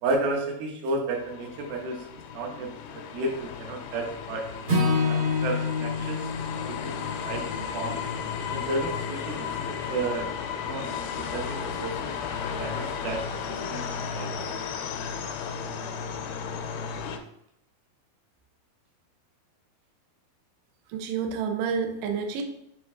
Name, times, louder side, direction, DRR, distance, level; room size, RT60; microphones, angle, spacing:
voice 1, 0.0-2.7 2.9-4.5 5.1-6.3 6.7-7.5 7.7-8.0 8.5-10.3 10.6-14.3, right 2 dB, 70° right, 1 dB, 2.7 m, -32 dB
sound 1, 1.1-17.2, left 7 dB, 85° left, 2.6 m, -34 dB
Acoustic guitar / Strum, 4.6-9.0, left 3 dB, 55° right, 1.1 m, -28 dB
voice 2, 20.9-22.4, right 6 dB, 90° right, 4 dB, 1.8 m, -29 dB
7.3 x 3.8 x 3.6 m, 0.76 s
omnidirectional pair, 4.7 m